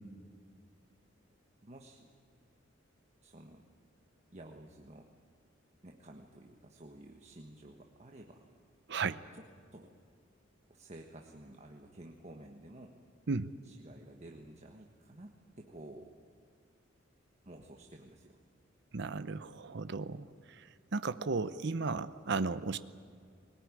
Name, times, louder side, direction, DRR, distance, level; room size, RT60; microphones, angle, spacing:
voice 1, 1.6-2.1 3.2-3.7 4.3-5.1 5.8-8.5 9.1-9.9 10.7-13.0 13.6-16.2 17.4-18.4, right 1 dB, 35° right, 2 dB, 1.4 m, -52 dB
voice 2, 18.9-22.8, right 4 dB, 60° right, 13 dB, 0.7 m, -35 dB
21.5 x 19.5 x 9.7 m, 2.2 s
head